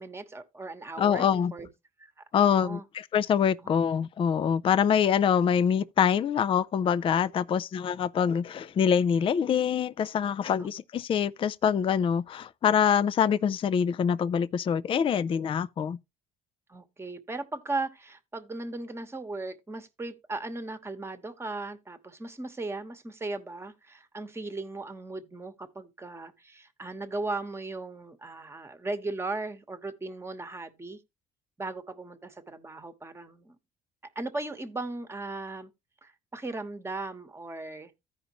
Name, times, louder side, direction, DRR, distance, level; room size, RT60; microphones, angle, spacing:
voice 1, 0.0-1.7 2.0-2.8 3.6-3.8 10.6-10.7 16.7-31.0 31.6-33.6 34.1-35.7 36.0-37.9, right 2 dB, 15° right, 1.1 m, -37 dB
voice 2, 1.0-1.5 2.3-16.0, left 8 dB, 30° left, 0.4 m, -25 dB
15.0 x 5.1 x 2.9 m
cardioid pair, 110°, 17 cm